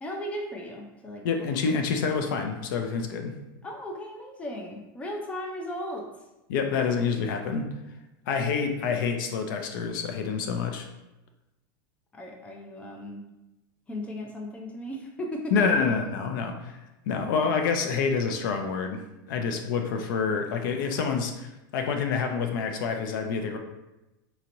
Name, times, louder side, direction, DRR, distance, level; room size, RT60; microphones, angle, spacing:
voice 1, 0.0-1.2 1.6-1.7 3.6-6.1 12.1-13.2 13.9-15.5, equal, 10° left, 1 dB, 0.5 m, -36 dB
voice 2, 1.2-3.4 6.5-7.7 8.3-10.9 15.5-16.8 17.1-23.6, left 5 dB, 65° left, 5 dB, 0.5 m, -27 dB
4.2 x 2.8 x 2.6 m, 0.98 s
supercardioid pair, 140°, 11 cm